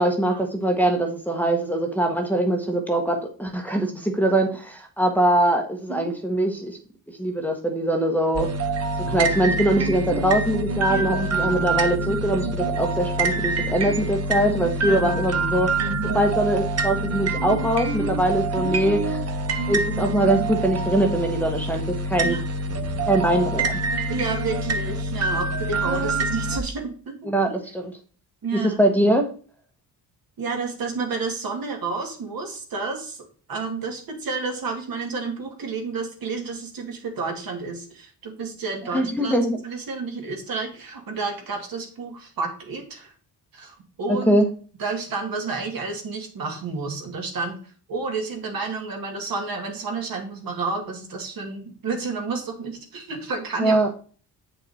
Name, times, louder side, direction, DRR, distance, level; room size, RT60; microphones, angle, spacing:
voice 1, 0.0-6.8 7.2-8.5 9.1-19.0 19.7-22.4 23.1-23.8 27.3-27.9 28.5-29.3 38.9-39.6 44.1-44.5 53.6-53.9, right 1 dB, 5° left, 1 dB, 1.1 m, -22 dB
sound 1, 8.3-26.6, right 2 dB, 40° right, 1.0 m, -26 dB
voice 2, 24.1-27.6 28.4-28.8 30.4-39.3 39.6-43.1 43.5-44.4 44.8-47.6 47.9-53.9, right 4 dB, 60° right, 2 dB, 2.4 m, -30 dB
8.4 x 5.5 x 4.2 m, 0.40 s
cardioid pair, 130°, 39 cm